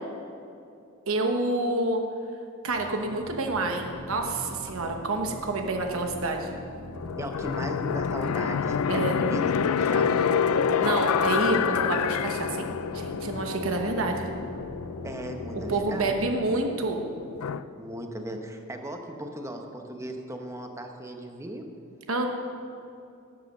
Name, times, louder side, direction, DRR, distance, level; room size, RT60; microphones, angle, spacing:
voice 1, 1.1-2.0 2.6-6.5 8.9-9.2 10.8-14.3 15.7-17.0 22.1-22.3, right 2 dB, 70° right, 4 dB, 1.0 m, -28 dB
sound 1, 2.7-16.3, left 1 dB, 35° left, 1.7 m, -43 dB
sound 2, 7.0-17.6, left 6 dB, 85° left, 0.4 m, -28 dB
voice 2, 7.2-9.5 9.8-10.3 15.0-16.3 17.7-21.6, right 1 dB, 15° right, 4 dB, 0.9 m, -37 dB
12.0 x 8.0 x 6.6 m, 2.6 s
head